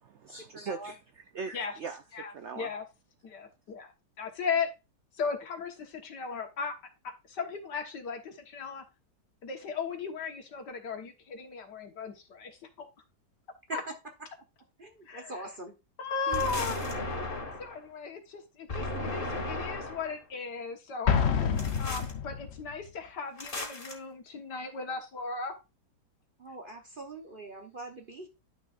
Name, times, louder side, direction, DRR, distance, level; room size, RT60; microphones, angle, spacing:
voice 1, 0.0-2.0 2.3-2.7, right 5 dB, 85° right, 8 dB, 0.6 m, -40 dB
voice 2, 0.5-0.9 13.7-13.9 14.8-15.7 16.3-16.4 26.4-28.3, right 2 dB, 40° right, 3 dB, 0.8 m, -42 dB
voice 3, 2.1-2.8 3.2-4.7 5.1-6.8 7.0-8.8 9.4-12.9 13.7-13.8 15.1-15.4 16.0-16.9 17.6-21.1 21.8-25.5, left 5 dB, 70° left, 4 dB, 2.0 m, -36 dB
sound 1, 16.3-17.8 18.7-20.2 21.6-22.1 23.4-23.9, left 2 dB, 30° left, 1.7 m, -35 dB
Explosion, 21.1-22.7, left 7 dB, 55° left, 0.7 m, -27 dB
11.0 x 6.4 x 2.5 m, 0.26 s
omnidirectional pair, 1.9 m